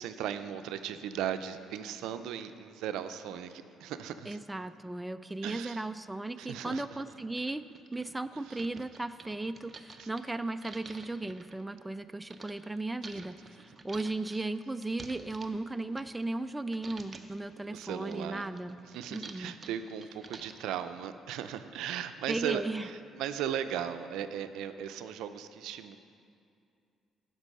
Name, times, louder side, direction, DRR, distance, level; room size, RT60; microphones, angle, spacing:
voice 1, 0.0-4.4 5.4-5.8 6.4-6.9 8.5-8.6 10.0-10.1 17.6-18.5 18.9-26.0, right 9 dB, 85° right, 10 dB, 0.5 m, -37 dB
voice 2, 4.3-7.6 7.9-18.8 19.1-19.5 22.3-22.9, right 2 dB, 10° right, 11 dB, 0.3 m, -36 dB
sound 1, 6.2-6.3 6.9-7.0 7.3-12.5 13.0-16.5 16.7-17.4 17.8-20.8, right 3 dB, 30° right, 0.7 m, -50 dB
13.5 x 5.3 x 5.4 m, 2.4 s
cardioid pair, 80°, 0 cm